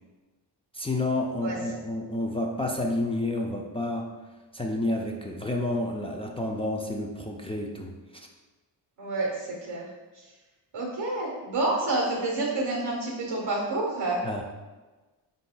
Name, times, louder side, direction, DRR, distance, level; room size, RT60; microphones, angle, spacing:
voice 1, 0.7-4.1 4.5-7.9 14.2-14.4, left 2 dB, 15° left, 0 dB, 0.4 m, -30 dB
voice 2, 1.4-1.8 9.0-9.9 10.1-10.3 10.7-14.2, right 2 dB, 85° right, -3 dB, 1.2 m, -29 dB
4.5 x 4.0 x 2.2 m, 1.2 s
cardioid pair, 50°, 46 cm